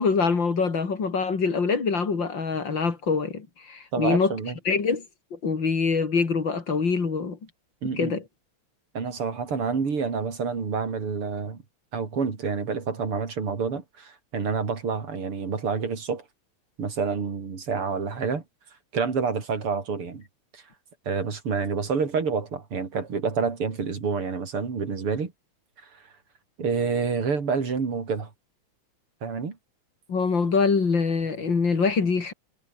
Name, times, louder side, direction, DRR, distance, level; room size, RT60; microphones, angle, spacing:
voice 1, 0.0-4.3 4.7-5.0 5.3-7.4 8.0-8.2 30.1-32.3, left 5 dB, 60° left, 3.6 m, -24 dB
voice 2, 3.9-4.6 7.8-8.2 8.9-11.6 11.9-16.2 16.8-18.4 18.9-20.2 20.5-20.6 21.1-25.3 26.6-28.3 29.2-29.6, right 5 dB, 85° right, 4.3 m, -28 dB
omnidirectional pair, 2.4 m